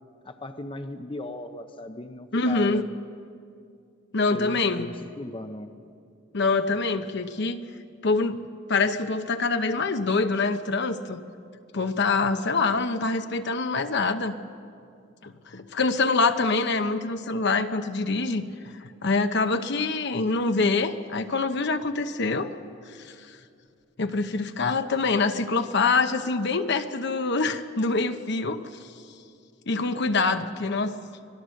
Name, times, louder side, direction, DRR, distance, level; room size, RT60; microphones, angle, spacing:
voice 1, 0.2-3.0 4.3-5.8, left 1 dB, 25° left, 7 dB, 0.7 m, -37 dB
voice 2, 2.3-2.8 4.1-4.9 6.3-7.6 8.0-8.4 8.7-11.2 11.7-14.4 15.2-22.5 22.9-23.1 24.0-28.6 29.7-30.9, left 3 dB, 60° left, 8 dB, 0.9 m, -25 dB
25.5 x 18.0 x 6.5 m, 2.4 s
head